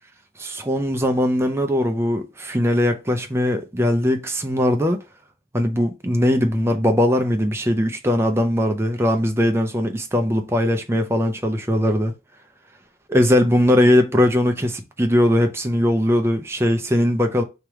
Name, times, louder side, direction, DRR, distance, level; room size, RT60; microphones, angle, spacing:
voice 1, 0.4-5.0 5.5-12.1 13.1-17.4, left 1 dB, 15° right, 0.5 m, -20 dB
3.3 x 3.0 x 4.7 m
head